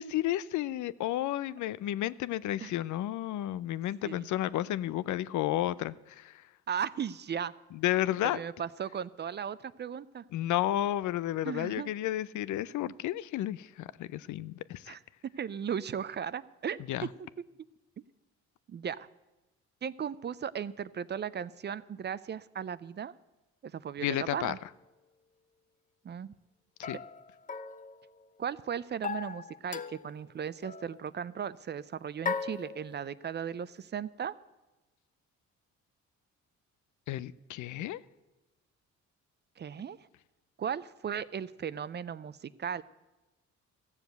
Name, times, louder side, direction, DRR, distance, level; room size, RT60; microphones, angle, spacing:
voice 1, 0.0-6.5 7.7-8.4 10.3-15.0 16.9-17.1 24.0-24.5 26.8-27.0 37.1-38.0, left 13 dB, 75° left, 18 dB, 0.5 m, -32 dB
voice 2, 6.7-7.5 8.2-10.2 11.5-11.9 14.9-15.0 15.4-16.8 18.7-19.1 19.8-23.1 23.6-24.6 26.0-26.3 28.4-34.3 39.6-40.0 40.6-42.8, right 8 dB, 35° right, 18 dB, 0.5 m, -36 dB
sound 1, 24.5-24.6 26.8-28.4 29.0-30.2 30.6-31.0 32.2-33.3, left 5 dB, 25° left, 0.6 m, -38 dB
14.0 x 7.2 x 7.9 m, 1.1 s
cardioid pair, 90°, 30 cm